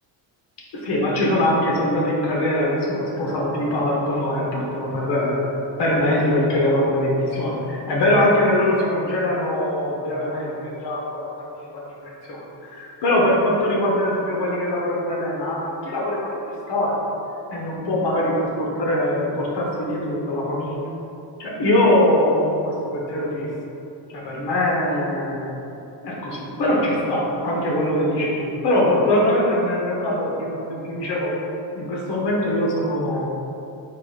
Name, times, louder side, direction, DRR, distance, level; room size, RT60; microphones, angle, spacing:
voice 1, 0.7-5.4 5.8-11.3 11.7-16.3 16.7-16.9 17.5-20.8 21.4-23.5 24.1-25.5 26.0-31.3 31.7-33.3, left 1 dB, 60° left, -3 dB, 1.0 m, -22 dB
3.8 x 2.4 x 3.9 m, 2.8 s
cardioid pair, 135°, 47 cm